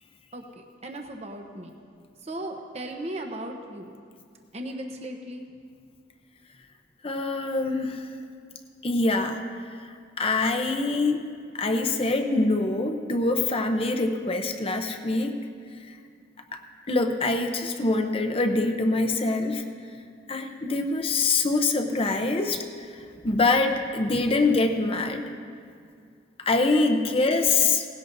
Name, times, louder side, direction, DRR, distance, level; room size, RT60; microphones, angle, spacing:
voice 1, 0.3-1.7 2.2-3.9 4.5-5.4, right 1 dB, 35° right, 2 dB, 1.0 m, -37 dB
voice 2, 7.0-8.1 8.8-9.4 9.7-11.2 11.5-15.4 15.8-16.0 16.5-16.6 16.9-19.6 20.3-25.3 26.4-27.9, left 3 dB, 30° left, 4 dB, 0.7 m, -25 dB
18.5 x 16.5 x 2.7 m, 2.2 s
head